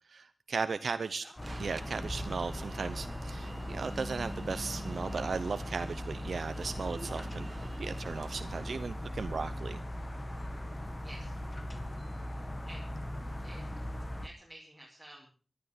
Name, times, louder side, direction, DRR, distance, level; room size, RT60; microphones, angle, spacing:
voice 1, 0.1-1.2 1.6-7.5 7.8-9.8, right 4 dB, 80° right, 11 dB, 0.8 m, -36 dB
sound 1, 1.4-14.3, left 1 dB, 25° left, 1.6 m, -39 dB
Alarm, 1.4-8.8, right 3 dB, 45° right, 0.8 m, -48 dB
voice 2, 11.0-11.4 12.7-12.8 13.4-13.7 14.2-15.3, right 1 dB, 5° right, -4 dB, 5.2 m, -51 dB
20.0 x 12.0 x 5.1 m, 0.39 s
wide cardioid pair, 85°, 0 cm